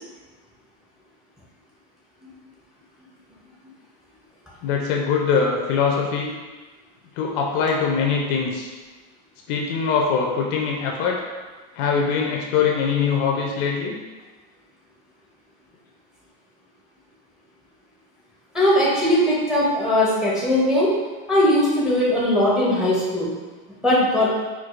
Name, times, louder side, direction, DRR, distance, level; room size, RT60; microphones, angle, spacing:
voice 1, 4.6-6.3 7.2-8.7 9.5-11.2 11.7-13.9, left 6 dB, 45° left, -1 dB, 0.5 m, -22 dB
voice 2, 18.5-20.9 21.3-23.3 23.8-24.3, left 1 dB, ahead, -7 dB, 0.5 m, -19 dB
4.5 x 2.3 x 2.4 m, 1.3 s
supercardioid pair, 155°, 29 cm